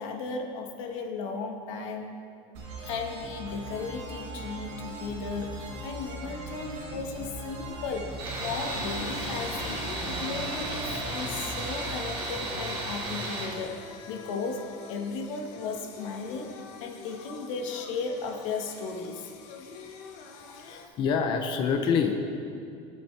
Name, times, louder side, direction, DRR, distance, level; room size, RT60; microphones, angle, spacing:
voice 1, 0.0-2.1 2.8-13.8 14.1-19.3, left 4 dB, 90° left, 3 dB, 1.3 m, -35 dB
sound 1, 2.5-13.1, right 1 dB, 70° right, 2.1 m, -40 dB
Singing, 4.6-20.9, left 5 dB, 65° left, 1.0 m, -48 dB
Tools, 8.2-13.6, right 2 dB, 30° right, 2.3 m, -34 dB
voice 2, 20.4-22.2, left 6 dB, 30° left, 4 dB, 0.5 m, -27 dB
17.0 x 7.1 x 3.2 m, 2.6 s
cardioid pair, 175°, 16 cm